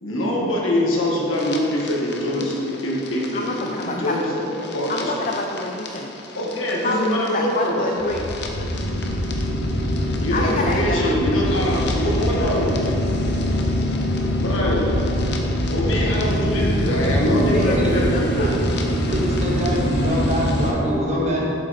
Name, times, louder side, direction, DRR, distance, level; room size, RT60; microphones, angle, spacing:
voice 1, 0.0-2.6 2.8-4.4 4.7-5.1 6.3-8.0 10.2-12.8 13.3-13.5 14.4-14.9 15.7-18.5 18.9-19.0, left 1 dB, 85° left, -3 dB, 1.7 m, -24 dB
sound 1, 1.3-20.7, equal, 55° left, 0.8 m, -24 dB
voice 2, 3.3-4.2 4.9-6.1 6.8-8.7 10.3-11.1 12.4-12.5 17.5-18.6 19.0-19.5, left 2 dB, 40° left, 1 dB, 0.5 m, -28 dB
voice 3, 17.2-17.8 19.1-21.5, equal, 35° right, -4 dB, 1.5 m, -24 dB
7.9 x 7.2 x 4.2 m, 2.9 s
head